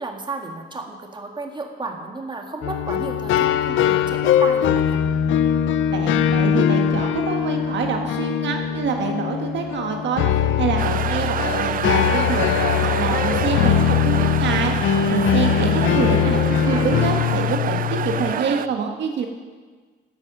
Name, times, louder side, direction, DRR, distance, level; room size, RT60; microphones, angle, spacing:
voice 1, 0.0-5.0 15.9-16.9, right 3 dB, 25° right, 3 dB, 1.8 m, -33 dB
sound 1, 2.6-18.3, left 8 dB, 80° left, 0.6 m, -21 dB
voice 2, 5.9-19.3, right 6 dB, 65° right, 3 dB, 1.5 m, -26 dB
sound 2, 10.8-18.7, right 9 dB, 45° right, 0.4 m, -28 dB
14.0 x 8.1 x 6.1 m, 1.4 s
cardioid pair, 90°, 20 cm